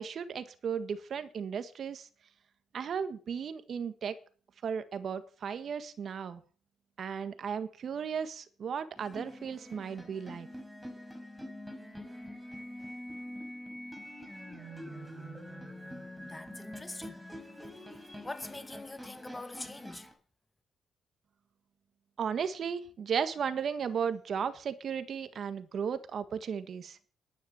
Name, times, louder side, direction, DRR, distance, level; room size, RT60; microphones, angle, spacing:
voice 1, 0.0-2.1 2.7-4.2 4.6-6.4 7.0-10.5 22.2-27.0, right 7 dB, 55° right, 1.7 m, -35 dB
sound 1, 9.0-20.1, equal, 5° right, 5.2 m, -45 dB
voice 2, 16.2-17.2 18.2-20.1, left 2 dB, 15° left, 1.8 m, -43 dB
11.0 x 9.9 x 7.2 m
cardioid pair, 90°, 0 cm